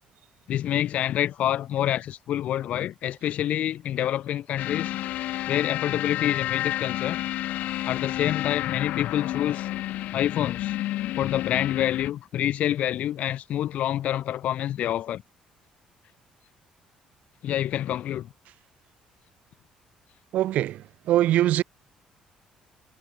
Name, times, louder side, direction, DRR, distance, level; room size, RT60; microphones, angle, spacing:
voice 1, 0.5-5.0 5.5-7.2 7.8-9.7 10.1-10.8 11.2-15.2 17.4-18.3, left 11 dB, 65° left, 0.7 m, -27 dB
sound 1, 4.6-12.1, left 15 dB, 80° left, 1.1 m, -30 dB
voice 2, 20.3-20.8 21.1-21.6, right 13 dB, 70° right, 0.6 m, -22 dB
cardioid pair, 120°, 3 cm